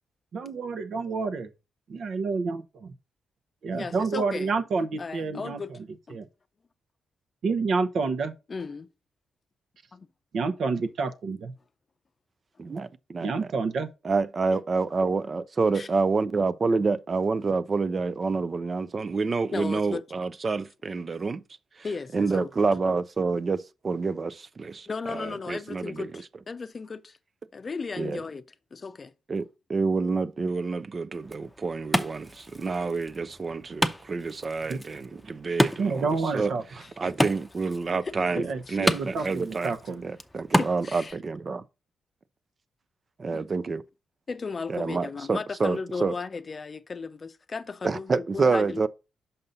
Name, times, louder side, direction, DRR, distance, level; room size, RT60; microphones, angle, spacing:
voice 1, 0.3-1.5 1.9-2.9 3.6-5.6 6.1-6.3 7.4-8.3 10.3-11.5 13.2-13.9 34.7-34.8 35.8-36.6 38.4-40.0, right 4 dB, 65° right, 0.9 m, -28 dB
voice 2, 3.7-4.5 5.0-5.7 6.1-6.2 8.5-8.9 9.9-10.1 14.5-14.6 15.7-15.9 19.5-20.0 21.8-22.5 24.9-27.2 27.5-28.4 28.7-29.1 36.8-36.9 38.0-39.3 40.6-41.2 43.3-43.5 44.3-48.9, left 4 dB, 40° left, 0.6 m, -36 dB
voice 3, 12.6-13.5 14.0-21.4 22.1-26.1 28.0-28.2 29.3-36.1 36.3-36.5 37.0-39.7 40.0-41.6 43.2-43.8 44.7-46.1 47.8-48.9, right 4 dB, 40° right, 0.5 m, -28 dB
Wood, 31.1-41.1, equal, 5° left, 0.8 m, -31 dB
5.6 x 5.4 x 4.0 m
cardioid pair, 65°, 0 cm